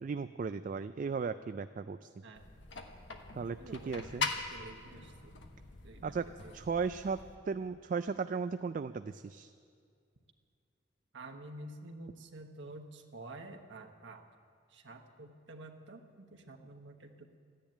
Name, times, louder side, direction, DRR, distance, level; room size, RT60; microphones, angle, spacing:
voice 1, 0.0-2.1 3.3-3.6 3.9-4.3 6.0-6.3 6.5-7.2 7.5-9.5, right 5 dB, 45° right, 11 dB, 0.3 m, -36 dB
sound 1, 2.3-7.4, left 4 dB, 70° left, 1.3 m, -42 dB
voice 2, 3.5-5.4 5.8-6.2 6.4-6.6 11.1-14.3 14.7-17.4, right 2 dB, 75° right, 4 dB, 1.2 m, -49 dB
13.5 x 10.5 x 9.0 m, 2.2 s
head